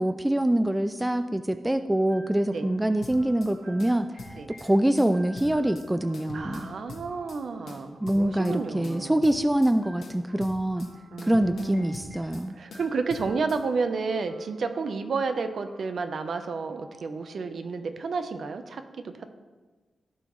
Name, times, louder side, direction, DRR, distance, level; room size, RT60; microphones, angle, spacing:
voice 1, 0.0-4.1 4.6-6.7 8.0-10.9 11.2-12.6, right 1 dB, 10° right, 10 dB, 0.3 m, -25 dB
sound 1, 2.1-17.9, right 1 dB, 80° right, 2.7 m, -53 dB
sound 2, 3.0-3.5 3.8-4.7 5.0-5.9 6.1-7.4 7.7-8.6 8.8-9.7 10.0-10.9 11.2-12.4 12.7-13.6, left 3 dB, 75° left, 1.4 m, -44 dB
voice 2, 6.3-9.2 11.1-12.0 12.5-19.3, right 4 dB, 55° right, 8 dB, 0.7 m, -31 dB
15.0 x 5.9 x 3.1 m, 1.3 s
wide cardioid pair, 135°, 0 cm